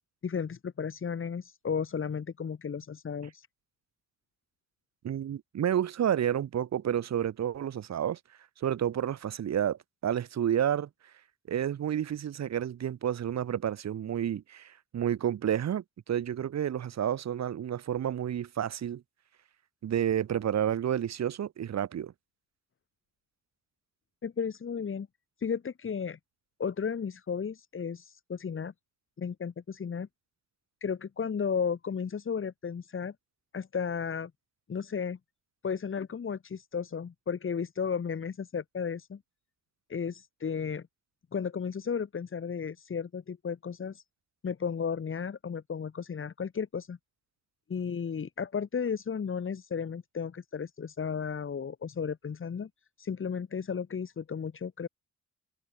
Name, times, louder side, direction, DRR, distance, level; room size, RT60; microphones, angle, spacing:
voice 1, 0.2-3.5 24.2-25.1 25.4-26.2 26.6-28.7 29.2-30.1 30.8-33.1 33.5-34.3 34.7-35.2 35.6-39.2 39.9-40.9 41.3-44.0 44.4-47.0 47.7-52.7 53.0-54.9, left 6 dB, 45° left, 5.5 m, -34 dB
voice 2, 5.0-8.2 8.6-10.9 11.5-19.0 19.8-22.1, right 10 dB, 60° right, 3.1 m, -30 dB
cardioid pair, 90°, 30 cm